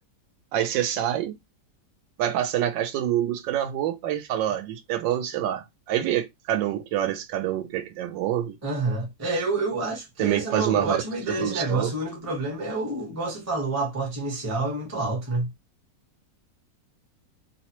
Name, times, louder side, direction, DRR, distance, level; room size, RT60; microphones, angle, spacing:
voice 1, 0.5-1.3 2.2-8.6 10.2-11.0 11.4-11.9, right 11 dB, 85° right, 1.3 m, -26 dB
voice 2, 8.6-15.5, right 2 dB, 15° right, 0.5 m, -28 dB
3.2 x 2.1 x 2.8 m
omnidirectional pair, 1.9 m